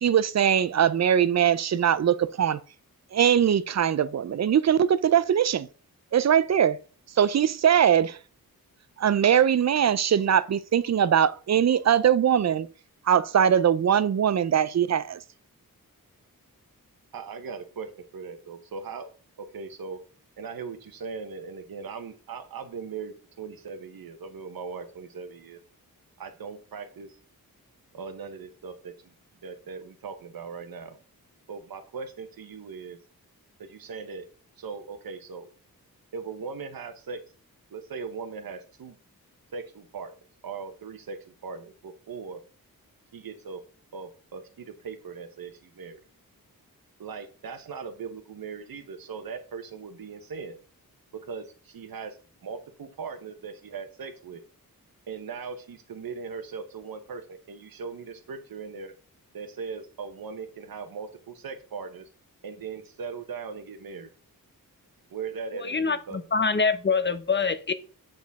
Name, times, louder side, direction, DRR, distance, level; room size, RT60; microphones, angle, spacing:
voice 1, 0.0-2.6 3.1-5.7 6.1-6.8 7.2-8.2 9.0-12.7 13.1-15.2, right 9 dB, 50° right, 0.4 m, -21 dB
voice 2, 17.1-17.9 18.1-19.1 19.4-20.0 20.4-25.6 26.2-27.1 27.9-28.9 29.4-31.0 31.5-33.0 33.6-34.2 34.6-35.5 36.1-37.2 37.7-39.0 39.5-40.1 40.4-41.2 41.4-42.4 43.1-43.6 43.9-46.0 47.0-50.6 51.3-52.2 52.4-54.4 55.1-58.9 59.3-62.0 62.4-64.1 65.1-66.3, right 5 dB, 75° right, 1.0 m, -39 dB
voice 3, 65.5-67.7, left 4 dB, 30° left, 0.6 m, -25 dB
7.8 x 4.4 x 3.5 m
wide cardioid pair, 115°, 35 cm